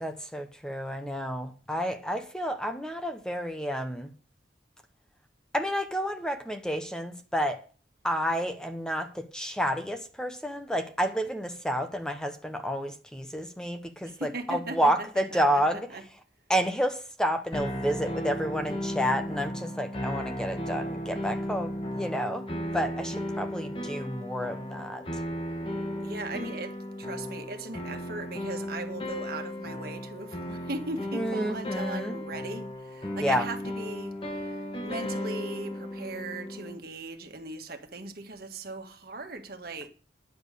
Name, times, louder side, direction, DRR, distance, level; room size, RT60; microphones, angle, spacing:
voice 1, 0.0-4.1 5.5-7.6 8.0-15.9 16.5-22.5 22.7-25.0 31.1-32.1 33.2-33.4, equal, 5° left, 0.9 m, -30 dB
voice 2, 14.0-16.0 26.0-39.9, right 2 dB, 55° right, 1.6 m, -39 dB
sound 1, 17.5-36.8, equal, 30° left, 1.7 m, -35 dB
10.5 x 7.1 x 6.8 m
head